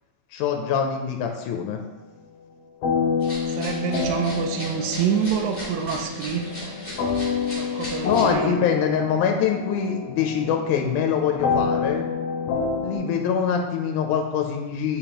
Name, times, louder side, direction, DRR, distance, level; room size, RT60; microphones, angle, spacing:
voice 1, 0.3-1.8 8.0-12.0 12.8-15.0, left 7 dB, 90° left, 3 dB, 2.0 m, -24 dB
sound 1, 2.8-13.0, left 5 dB, 70° left, 1.5 m, -28 dB
sound 2, 3.2-8.3, left 1 dB, 15° left, 1.6 m, -38 dB
voice 2, 3.2-6.7 7.5-8.6, right 7 dB, 80° right, 3 dB, 1.8 m, -27 dB
6.8 x 5.0 x 2.9 m, 1.1 s
omnidirectional pair, 3.4 m